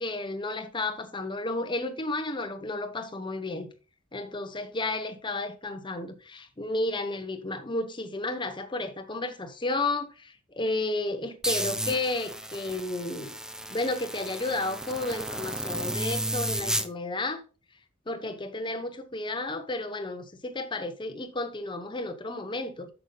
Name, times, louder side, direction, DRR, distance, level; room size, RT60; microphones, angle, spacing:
voice 1, 0.0-3.7 4.1-13.3 13.7-17.4 18.1-22.9, left 2 dB, 25° left, 1.0 m, -32 dB
sound 1, 11.4-16.9, right 1 dB, 5° right, 0.5 m, -33 dB
8.1 x 6.9 x 3.8 m
head